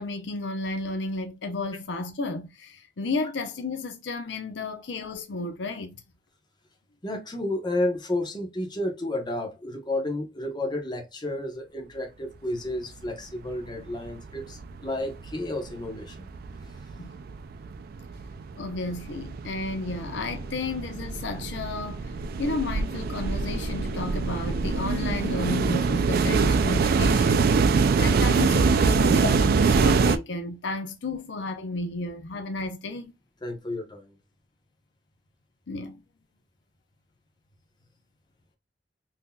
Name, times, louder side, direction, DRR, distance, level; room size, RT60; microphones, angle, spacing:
voice 1, 0.0-6.0 17.0-17.2 18.6-22.1 22.4-27.5 28.0-33.1 35.7-36.0, left 3 dB, 80° left, 0.6 m, -32 dB
voice 2, 7.0-16.3 33.4-34.1, left 1 dB, 25° left, 0.9 m, -31 dB
sound 1, 13.5-13.6 13.9-14.8 15.2-30.2, right 4 dB, 55° right, 0.3 m, -24 dB
3.7 x 2.8 x 2.2 m
head